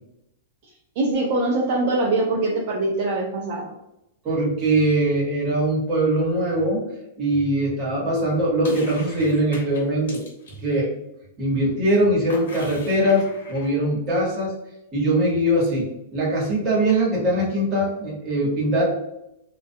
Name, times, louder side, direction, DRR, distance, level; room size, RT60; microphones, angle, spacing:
voice 1, 1.0-3.7, right 2 dB, 50° right, -2 dB, 0.4 m, -23 dB
voice 2, 4.2-6.8 7.2-10.2 10.6-10.9 11.4-14.5 14.9-18.8, right 1 dB, 25° right, -5 dB, 1.0 m, -21 dB
sound 1, 8.6-10.6 12.3-13.7, left 3 dB, 85° left, 0.9 m, -40 dB
2.2 x 2.2 x 2.6 m, 0.85 s
supercardioid pair, 160°, 0 cm